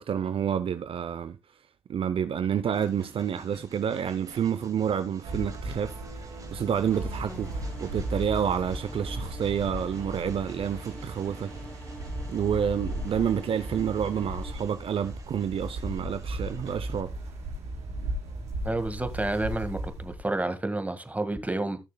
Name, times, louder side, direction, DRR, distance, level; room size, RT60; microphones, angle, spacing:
voice 1, 0.0-1.4 1.9-6.0 6.5-11.5 12.3-17.1, right 8 dB, 60° right, 0.6 m, -29 dB
Train, 2.7-17.0, right 3 dB, 35° right, 2.2 m, -51 dB
sound 1, 5.2-20.4, right 1 dB, 90° right, 3.0 m, -36 dB
sound 2, 6.8-14.5, equal, 15° left, 2.5 m, -47 dB
voice 2, 18.6-21.8, right 2 dB, 15° right, 1.7 m, -30 dB
15.0 x 6.5 x 2.3 m
supercardioid pair, 55°, 10 cm